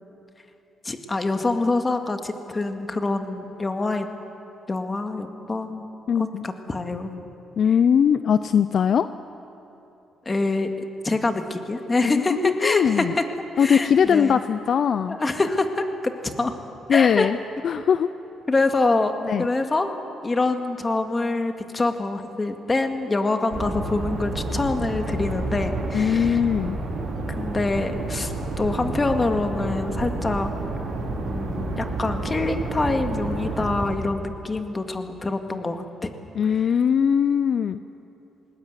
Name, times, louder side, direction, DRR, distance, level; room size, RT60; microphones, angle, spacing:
voice 1, 0.8-4.1 4.7-5.9 6.2-7.2 10.3-10.7 11.0-13.2 13.5-14.4 15.1-16.5 16.9-17.3 18.5-19.1 19.4-19.9 20.2-26.4 27.4-30.5 31.3-36.1 36.6-36.7, left 2 dB, 25° left, 6 dB, 2.0 m, -25 dB
voice 2, 6.1-6.5 7.6-9.1 12.0-13.1 13.6-15.2 16.9-17.4 17.6-18.1 19.2-19.5 25.9-26.8 36.4-37.8, left 7 dB, 60° left, 12 dB, 0.5 m, -20 dB
sound 1, 23.5-33.8, right 2 dB, 60° right, 5.0 m, -29 dB
19.5 x 19.5 x 9.3 m, 2.9 s
cardioid pair, 90°, 0 cm